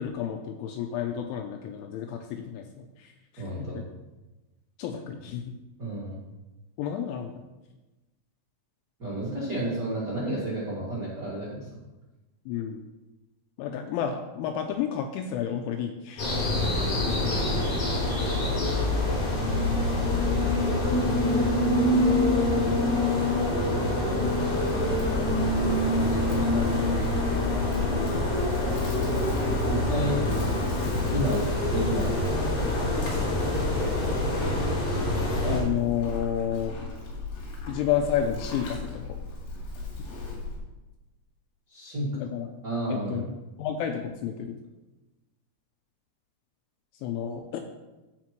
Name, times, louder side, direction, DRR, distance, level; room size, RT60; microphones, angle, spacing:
voice 1, 0.0-3.8 4.8-5.4 6.8-7.3 12.5-12.8 13.6-16.6 18.0-18.2 22.5-22.8 26.4-26.6 35.4-36.7 37.7-39.0 42.1-42.5 42.9-43.2 43.6-44.6 47.0-47.6, left 9 dB, 85° left, 5 dB, 2.8 m, -31 dB
voice 2, 3.4-3.8 5.8-6.2 9.0-11.7 20.7-21.2 26.0-26.5 29.7-30.2 31.1-32.6 41.7-42.2 42.6-43.3, right 1 dB, 85° right, -8 dB, 0.9 m, -31 dB
sound 1, 16.2-35.6, left 1 dB, 45° left, 4.1 m, -25 dB
Livestock farm animals working animals, 24.1-40.6, left 3 dB, 70° left, 4.3 m, -36 dB
14.5 x 5.9 x 3.0 m, 1.1 s
omnidirectional pair, 6.0 m